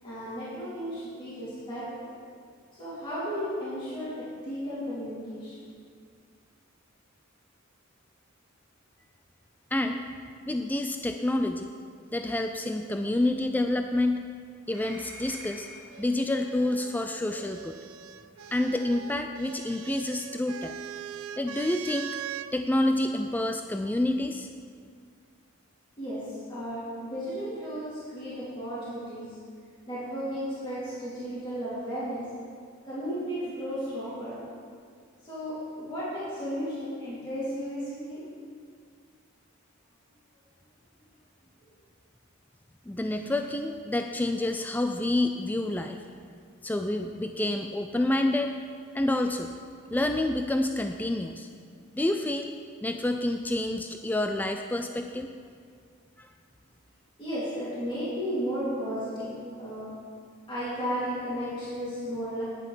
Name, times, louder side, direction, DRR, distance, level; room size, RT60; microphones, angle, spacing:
voice 1, 0.0-2.2 2.7-5.6 26.0-29.4 29.9-32.3 32.8-34.4 35.2-38.3 57.2-59.9 60.5-62.4, equal, 25° left, -11 dB, 3.1 m, -34 dB
voice 2, 9.7-10.0 10.5-11.7 12.1-14.2 14.7-15.7 16.0-17.8 18.5-20.7 21.4-22.1 22.5-24.5 42.9-46.0 46.6-48.6 48.9-49.5 49.9-51.5 51.9-52.5 52.8-55.3 56.2-56.3, left 1 dB, 10° left, 5 dB, 0.3 m, -28 dB
sound 1, 14.6-16.0 17.3-17.4 18.3-18.5, right 1 dB, 20° right, 3.1 m, -46 dB
sound 2, 15.9-22.5 23.6-24.3, right 10 dB, 90° right, 0.4 m, -42 dB
9.9 x 8.9 x 5.6 m, 2.1 s
head